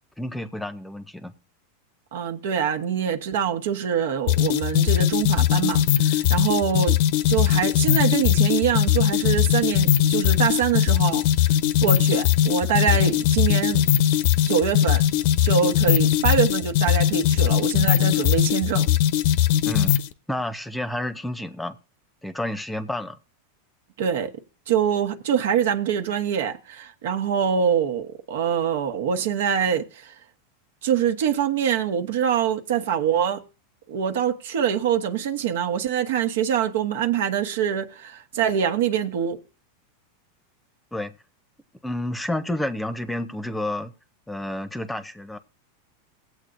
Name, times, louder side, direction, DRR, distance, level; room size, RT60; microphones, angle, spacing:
voice 1, 0.2-1.3 19.6-19.9 20.3-21.8 22.2-23.2 40.9-41.1 41.8-43.9 44.3-45.4, left 1 dB, 5° left, 0.8 m, -30 dB
voice 2, 2.1-7.0 7.2-11.2 11.8-13.8 14.5-15.0 15.4-18.9 24.0-24.3 24.7-30.1 30.8-33.4 33.9-39.4, right 8 dB, 75° right, 1.2 m, -24 dB
sound 1, 4.3-20.1, left 11 dB, 60° left, 0.7 m, -20 dB
17.5 x 8.1 x 2.6 m
hypercardioid pair, 120°, 0 cm